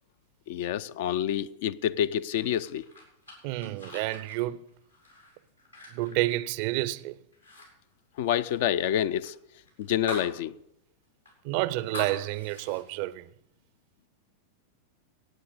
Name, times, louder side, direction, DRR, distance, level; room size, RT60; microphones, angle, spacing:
voice 1, 0.5-2.9 8.2-9.3 9.8-10.5, left 10 dB, 50° left, 0.5 m, -28 dB
sound 1, 2.4-7.0 7.3-7.7 7.9-10.4 10.7-10.8 11.2-12.8, left 1 dB, 90° left, 6.8 m, -44 dB
voice 2, 3.4-4.6 5.9-7.2 11.4-13.3, right 17 dB, 45° right, 0.6 m, -29 dB
15.5 x 9.3 x 6.7 m
figure-of-eight pair, 90°, 0 cm